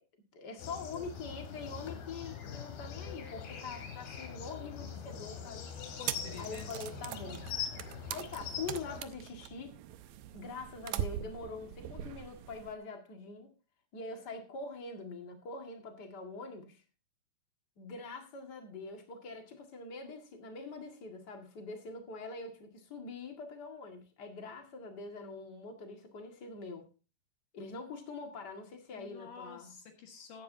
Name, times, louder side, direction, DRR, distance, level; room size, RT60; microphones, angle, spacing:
voice 1, 0.3-5.6 6.4-7.5 8.1-9.7 10.3-13.5 13.9-16.8 17.8-26.9 27.5-29.7, left 4 dB, 40° left, 1.6 m, -44 dB
sound 1, 0.6-9.0, left 7 dB, 80° left, 3.9 m, -43 dB
voice 2, 6.0-6.7 28.9-30.4, left 6 dB, 60° left, 3.0 m, -49 dB
sound 2, 6.1-12.8, right 11 dB, 75° right, 2.1 m, -42 dB
14.5 x 10.5 x 2.7 m
omnidirectional pair, 4.5 m